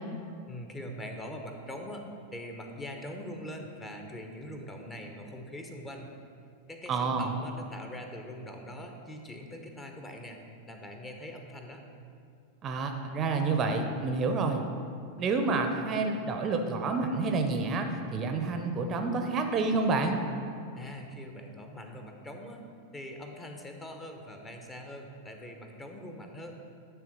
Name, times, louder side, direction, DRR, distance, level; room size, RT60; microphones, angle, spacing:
voice 1, 0.5-2.0 2.3-6.1 6.7-10.4 10.7-11.8 20.8-22.6 22.9-26.5, left 1 dB, 15° left, 3 dB, 0.8 m, -42 dB
voice 2, 6.9-7.3 12.6-14.6 15.2-20.2, right 3 dB, 30° right, 4 dB, 0.6 m, -29 dB
10.0 x 3.4 x 6.1 m, 2.4 s
figure-of-eight pair, 90°, 0 cm